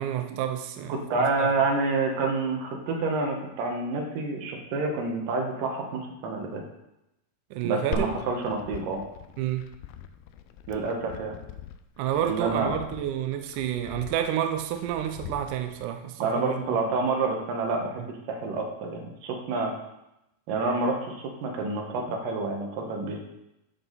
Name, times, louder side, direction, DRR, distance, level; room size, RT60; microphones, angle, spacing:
voice 1, 0.0-1.5 7.5-8.1 9.4-9.7 12.0-16.8 18.0-18.1, right 10 dB, 85° right, 7 dB, 1.8 m, -30 dB
voice 2, 0.9-6.6 7.6-9.0 10.7-11.4 12.2-12.7 16.2-19.7 20.5-23.2, right 3 dB, 70° right, 1 dB, 2.7 m, -28 dB
Glass, 7.9-15.9, left 5 dB, 80° left, 2.2 m, -41 dB
13.5 x 4.6 x 3.9 m, 0.88 s
omnidirectional pair, 4.4 m